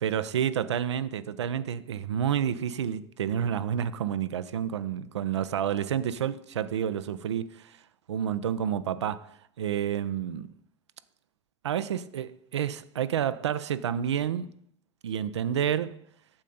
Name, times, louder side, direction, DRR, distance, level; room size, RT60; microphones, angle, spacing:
voice 1, 0.0-7.8 8.1-10.5 11.6-14.5 15.0-16.0, right 9 dB, 80° right, 0.4 m, -29 dB
8.6 x 7.4 x 3.9 m
hypercardioid pair, 75°, 14 cm